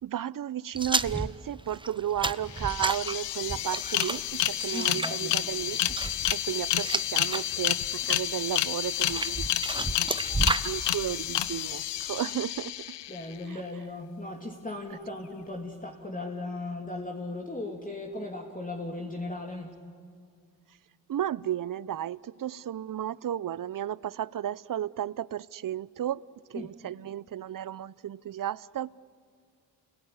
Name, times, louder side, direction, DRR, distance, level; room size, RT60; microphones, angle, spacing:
voice 1, 0.0-5.8 6.3-12.7 13.5-13.6 14.9-15.0 21.1-26.2 26.5-29.0, right 11 dB, 50° right, 21 dB, 0.7 m, -34 dB
sound 1, 0.8-7.4 7.8-8.3 8.9-10.7, right 2 dB, 10° right, 1.0 m, -32 dB
sound 2, 2.5-13.3, left 12 dB, 80° left, 1.0 m, -30 dB
voice 2, 4.7-5.3 13.1-19.8 26.5-26.7, left 2 dB, 20° left, 1 dB, 3.0 m, -37 dB
28.5 x 21.0 x 9.7 m, 2.2 s
supercardioid pair, 45°, 41 cm